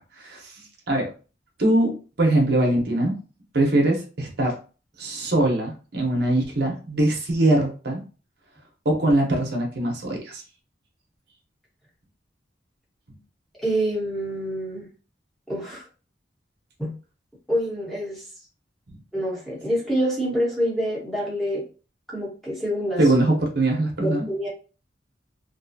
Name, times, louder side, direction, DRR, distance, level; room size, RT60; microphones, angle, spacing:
voice 1, 0.2-1.1 1.6-3.1 3.5-4.5 5.0-8.0 8.8-10.4 23.0-24.3, right 1 dB, 60° right, 1 dB, 0.9 m, -22 dB
voice 2, 13.6-14.9 15.5-15.8 16.8-16.9 17.5-18.2 19.1-21.6 22.1-23.0 24.0-24.5, equal, ahead, -6 dB, 1.2 m, -26 dB
2.6 x 2.3 x 2.6 m, 0.36 s
head